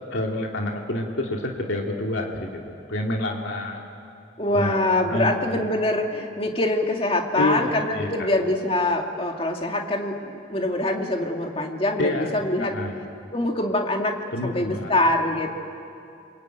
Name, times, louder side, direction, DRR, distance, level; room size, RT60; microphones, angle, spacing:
voice 1, 0.1-2.6 2.9-3.8 4.5-5.6 7.3-8.1 12.0-12.3 12.6-13.0 14.3-15.1, left 1 dB, 75° left, 0 dB, 2.4 m, -28 dB
voice 2, 4.4-10.2 10.5-12.8 13.3-15.5, left 1 dB, 30° left, 2 dB, 2.1 m, -24 dB
28.5 x 23.0 x 9.0 m, 2.6 s
head